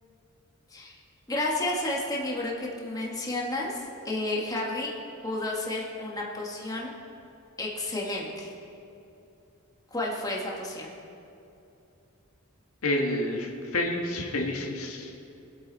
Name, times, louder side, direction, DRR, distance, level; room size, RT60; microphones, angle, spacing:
voice 1, 1.3-4.9 5.2-6.9 7.6-8.5 9.9-10.9, left 2 dB, 20° left, -3 dB, 1.7 m, -31 dB
voice 2, 12.8-13.5 13.7-15.1, left 1 dB, 80° left, 0 dB, 1.7 m, -28 dB
23.0 x 8.2 x 4.1 m, 2.7 s
head